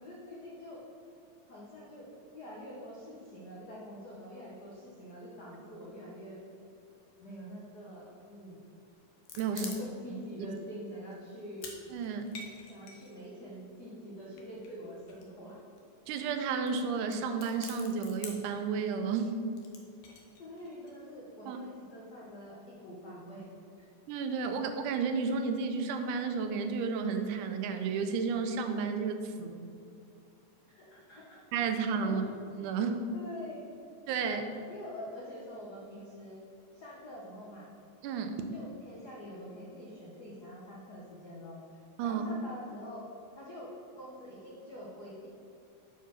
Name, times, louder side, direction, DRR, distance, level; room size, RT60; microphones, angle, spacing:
voice 1, 0.0-0.8 1.5-2.1 2.3-6.4 7.2-8.6 9.5-11.7 12.7-15.6 20.4-23.5 23.8-23.9 30.7-31.4 32.0-32.3 33.1-33.7 34.2-36.4 36.7-37.7 38.5-41.6 42.0-43.0 43.4-45.3, equal, 85° left, -5 dB, 0.8 m, -45 dB
sound 1, 9.0-10.2 10.6-10.7 11.1-11.8 12.0-13.6 14.4-15.5 15.8-16.2 16.7-16.8 17.0-18.5 19.6-20.9, left 4 dB, 65° left, 1.3 m, -47 dB
voice 2, 11.9-12.3 16.1-19.3 21.5-21.6 24.1-29.6 31.5-32.3 32.6-33.0 34.1-34.4 38.0-38.4 42.0-42.2, right 5 dB, 85° right, 7 dB, 2.1 m, -32 dB
6.9 x 4.7 x 6.1 m, 2.5 s
omnidirectional pair, 3.5 m